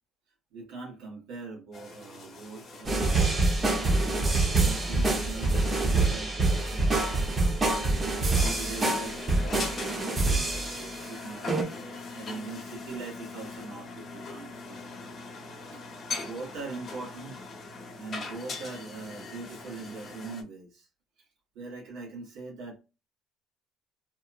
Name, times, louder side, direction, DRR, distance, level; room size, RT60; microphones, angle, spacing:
voice 1, 0.5-15.2 15.7-15.8 16.2-17.4 18.0-20.9 21.5-22.8, right 3 dB, 90° right, 1.1 m, -42 dB
sound 1, 1.7-20.4, left 3 dB, 40° left, 0.9 m, -42 dB
sound 2, 2.8-11.1 11.5-11.6, right 3 dB, 25° right, 0.7 m, -26 dB
2.8 x 2.1 x 2.4 m
cardioid pair, 125°, 0 cm